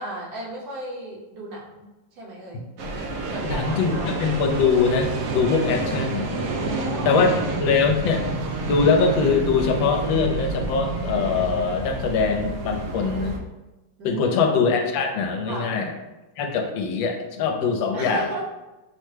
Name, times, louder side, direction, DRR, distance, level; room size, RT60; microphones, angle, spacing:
voice 1, 0.0-2.7 3.2-4.2 6.5-7.2 14.0-14.2 15.5-15.9 17.9-18.4, right 2 dB, 55° right, -3 dB, 1.3 m, -35 dB
sound 1, 2.8-13.4, right 2 dB, 90° right, 0.7 m, -29 dB
voice 2, 3.4-6.3 7.0-8.2 8.7-13.3 14.0-15.9 16.4-18.2, left 5 dB, 80° left, 4 dB, 1.3 m, -22 dB
6.2 x 2.1 x 3.2 m, 1.1 s
omnidirectional pair, 2.1 m